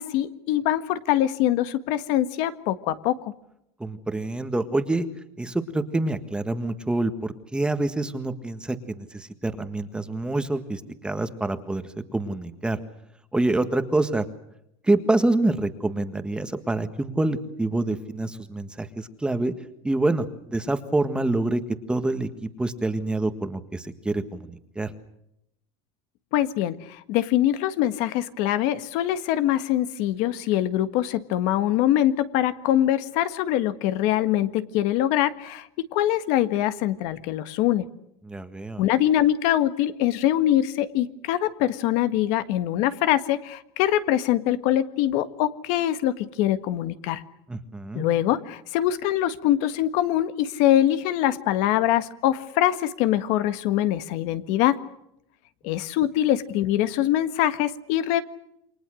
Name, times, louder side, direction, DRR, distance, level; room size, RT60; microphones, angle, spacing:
voice 1, 0.0-3.2 26.3-37.9 38.8-47.2 47.9-54.8 55.6-58.2, left 12 dB, 60° left, 11 dB, 1.6 m, -23 dB
voice 2, 3.8-5.0 5.4-11.8 12.1-12.8 13.3-14.2 14.8-19.5 19.8-21.6 21.9-24.9 38.2-38.8 47.5-48.1, right 2 dB, 5° right, 9 dB, 1.6 m, -26 dB
28.5 x 24.0 x 6.4 m, 0.80 s
cardioid pair, 150°, 14 cm